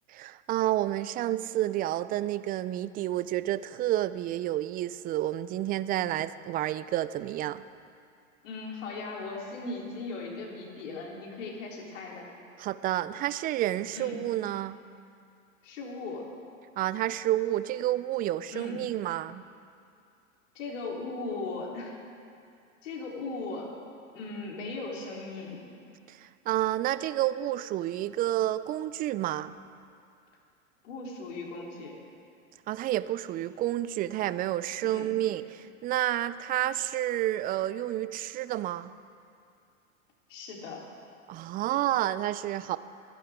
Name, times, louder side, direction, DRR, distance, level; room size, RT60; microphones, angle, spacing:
voice 1, 0.1-7.6 12.6-14.8 16.8-19.4 26.1-26.2 26.5-29.6 32.7-38.9 41.3-42.8, right 14 dB, 25° right, 15 dB, 0.4 m, -30 dB
voice 2, 8.4-12.3 13.9-14.2 15.6-16.3 18.5-18.8 20.5-22.0 22.8-23.7 24.1-25.6 30.8-31.9 34.8-35.2 40.3-40.8, left 3 dB, 70° left, -2 dB, 3.8 m, -38 dB
29.5 x 11.0 x 3.7 m, 2.5 s
hypercardioid pair, 100°, 39 cm